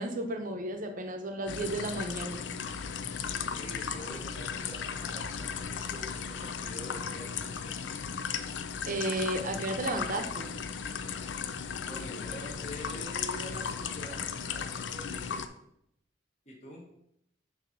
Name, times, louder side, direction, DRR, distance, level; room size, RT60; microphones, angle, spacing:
voice 1, 0.0-2.4 8.9-10.5, right 1 dB, 45° right, 5 dB, 0.7 m, -33 dB
sound 1, 1.5-15.5, left 6 dB, 70° left, 0.4 m, -36 dB
voice 2, 3.5-7.7 11.8-15.4 16.5-16.9, equal, 40° left, -2 dB, 1.3 m, -46 dB
6.9 x 2.8 x 5.9 m, 0.75 s
head